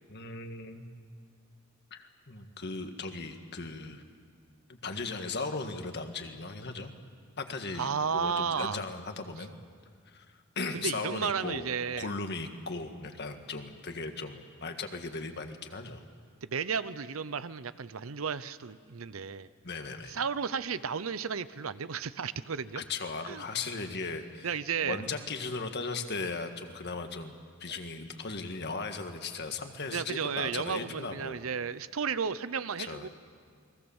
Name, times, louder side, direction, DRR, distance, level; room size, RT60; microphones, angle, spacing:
voice 1, 0.1-0.9 1.9-4.0 4.7-6.9 7.4-9.5 10.1-11.7 12.0-16.0 19.6-20.2 22.8-24.5 24.8-31.5 32.8-33.1, left 3 dB, 55° left, 6 dB, 1.7 m, -37 dB
voice 2, 7.8-8.8 10.7-12.1 16.4-19.5 20.1-22.8 23.3-23.4 24.4-25.0 27.7-27.8 29.9-33.1, right 6 dB, 80° right, 15 dB, 0.7 m, -33 dB
29.0 x 20.5 x 7.2 m, 2.1 s
head